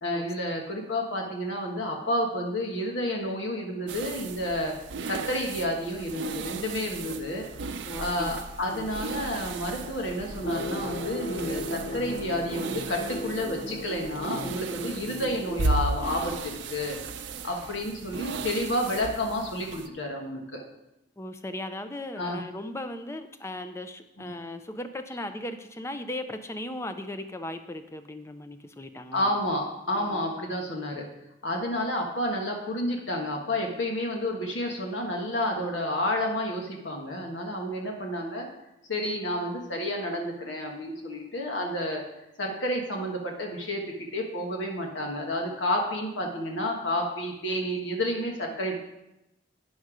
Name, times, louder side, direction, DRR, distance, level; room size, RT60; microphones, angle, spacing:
voice 1, 0.0-4.7 5.1-7.4 8.0-17.0 17.4-20.6 22.2-22.4 24.2-24.3 29.1-31.1 31.4-38.5 38.9-42.0 42.4-48.8, left 1 dB, 80° left, 1 dB, 1.4 m, -30 dB
sound 1, 3.9-19.9, right 3 dB, 75° right, 0.6 m, -36 dB
voice 2, 7.8-8.4 8.7-8.9 21.2-29.3 30.0-30.2, left 1 dB, 15° left, 9 dB, 0.4 m, -37 dB
sound 2, 10.4-16.2, left 1 dB, 60° left, 0.6 m, -36 dB
9.5 x 6.5 x 4.9 m, 0.90 s
head